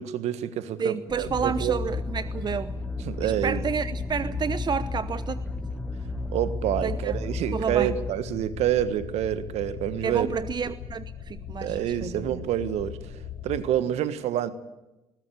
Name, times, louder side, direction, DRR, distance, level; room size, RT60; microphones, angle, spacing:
voice 1, 0.0-1.8 3.0-3.6 6.3-10.3 11.6-14.5, right 11 dB, 65° right, 1.5 m, -28 dB
voice 2, 0.8-2.8 3.2-5.4 6.8-7.1 7.5-7.9 10.0-12.3, right 6 dB, 35° right, 0.9 m, -30 dB
sound 1, 1.1-8.1, left 2 dB, 10° left, 1.3 m, -33 dB
sound 2, 1.2-13.6, left 7 dB, 60° left, 6.0 m, -39 dB
20.5 x 20.0 x 8.4 m
hypercardioid pair, 50°, 12 cm